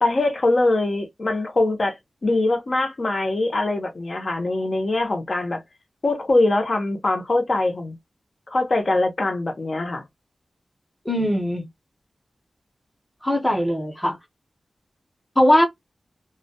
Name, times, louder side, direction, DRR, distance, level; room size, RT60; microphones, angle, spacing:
voice 1, 0.0-2.0 2.2-5.6 6.0-8.0 8.5-10.0, left 2 dB, 55° left, 0.7 m, -22 dB
voice 2, 11.0-11.7 13.2-14.2 15.4-15.6, left 1 dB, 5° left, 0.8 m, -20 dB
2.2 x 2.1 x 2.7 m
wide cardioid pair, 80°, 0 cm